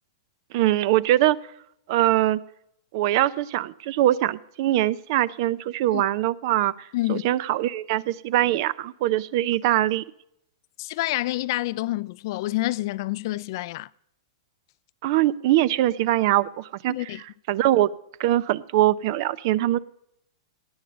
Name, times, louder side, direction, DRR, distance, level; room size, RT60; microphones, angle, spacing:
voice 1, 0.5-1.4 1.9-2.4 2.9-6.7 7.1-10.0 15.0-16.9 17.5-17.9 18.2-19.8, right 14 dB, 50° right, 0.5 m, -22 dB
voice 2, 10.8-13.9 16.9-17.2, left 17 dB, 55° left, 0.4 m, -28 dB
17.0 x 9.5 x 5.2 m
hypercardioid pair, 135°, 3 cm